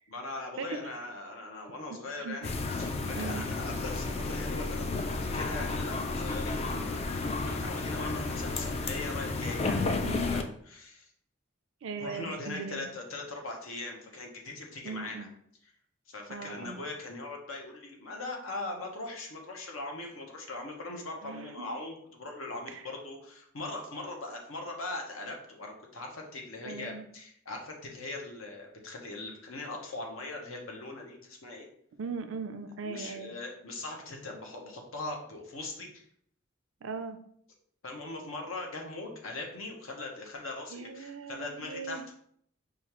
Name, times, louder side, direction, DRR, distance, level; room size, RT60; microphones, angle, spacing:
voice 1, 0.1-11.1 12.0-15.3 16.1-31.7 32.8-36.0 37.8-42.1, left 2 dB, 80° left, 1 dB, 0.9 m, -40 dB
voice 2, 1.9-2.4 3.0-3.4 10.0-10.3 11.8-12.9 14.8-15.3 16.3-16.8 21.2-21.7 22.7-22.9 26.6-27.0 32.0-33.3 36.8-37.2 40.7-42.0, right 5 dB, 70° right, 9 dB, 0.4 m, -39 dB
sound 1, 2.4-10.4, left 3 dB, 30° left, 0.3 m, -32 dB
5.0 x 2.4 x 3.0 m, 0.65 s
head